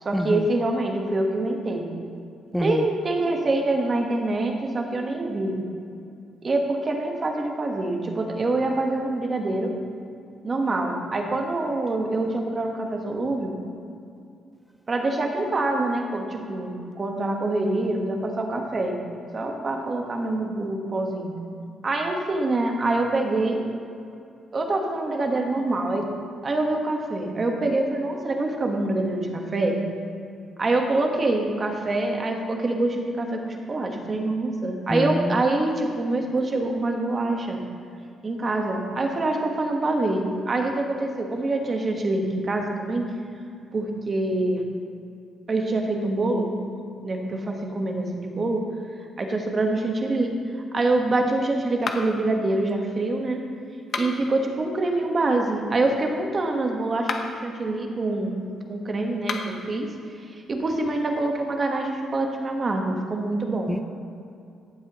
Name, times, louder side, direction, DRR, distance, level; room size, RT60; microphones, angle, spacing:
voice 1, 0.0-1.9 2.6-5.6 6.4-9.8 10.4-13.5 14.9-19.0 19.3-21.3 21.8-23.6 24.5-26.1 26.4-29.8 30.6-37.6 38.2-43.1 43.7-44.6 45.5-46.5 47.0-48.7 49.2-50.4 50.7-53.4 53.9-58.4 58.7-59.9 60.5-63.8, right 2 dB, 35° right, 2 dB, 1.4 m, -25 dB
voice 2, 34.9-35.4 63.7-63.8, equal, ahead, 7 dB, 0.3 m, -25 dB
sound 1, 51.8-52.3 53.8-54.4 56.9-57.5 59.2-59.7, left 4 dB, 55° left, 0.9 m, -32 dB
15.0 x 7.5 x 3.1 m, 2.5 s
cardioid pair, 90°, 0 cm